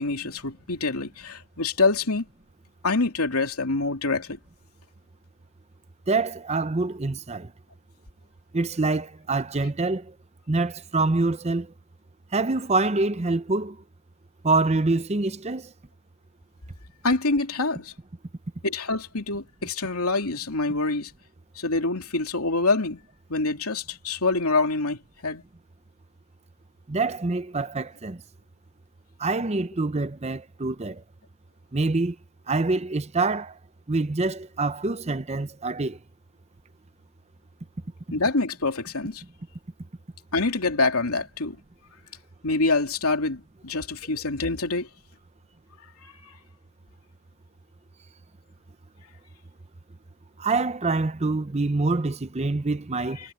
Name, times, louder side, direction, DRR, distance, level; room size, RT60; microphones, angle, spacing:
voice 1, 0.0-2.2 2.8-4.4 17.0-17.9 18.6-21.1 21.5-23.0 23.3-25.4 38.1-39.2 40.3-41.6 42.4-44.9 46.0-46.3, left 3 dB, 85° left, 2.9 m, -26 dB
voice 2, 6.1-7.5 8.5-10.1 10.5-11.7 12.3-13.8 14.4-15.7 26.9-28.2 29.2-31.0 31.7-32.2 32.5-33.6 33.9-36.0 50.4-53.2, right 3 dB, 30° right, 0.7 m, -25 dB
head